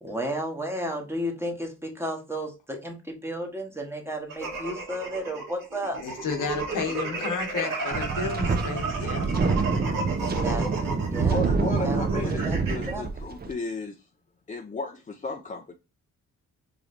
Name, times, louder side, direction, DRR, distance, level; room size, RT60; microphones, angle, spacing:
voice 1, 0.0-6.0 10.1-12.6 12.9-13.2, equal, 10° right, 1.1 m, -33 dB
sound 1, 4.3-12.9, right 3 dB, 80° right, 1.6 m, -33 dB
voice 2, 6.0-9.3, left 5 dB, 75° left, 1.1 m, -32 dB
Wind, 7.9-13.5, right 4 dB, 30° right, 0.6 m, -26 dB
voice 3, 11.3-14.0 14.5-15.7, left 3 dB, 25° left, 0.5 m, -34 dB
5.0 x 3.1 x 2.5 m
cardioid pair, 110°, 32 cm